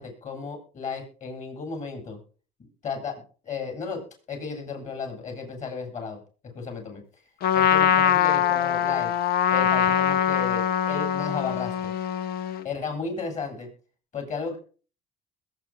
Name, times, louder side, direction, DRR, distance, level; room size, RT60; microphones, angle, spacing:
voice 1, 0.0-2.2 2.6-3.1 3.4-4.0 4.3-6.2 6.5-7.0 7.5-9.1 9.5-11.9 12.6-13.7 14.1-14.6, left 5 dB, 45° left, 3 dB, 7.9 m, -34 dB
Trumpet, 7.4-12.7, left 9 dB, 65° left, 1.0 m, -23 dB
21.0 x 9.2 x 3.8 m, 0.38 s
cardioid pair, 110°, 17 cm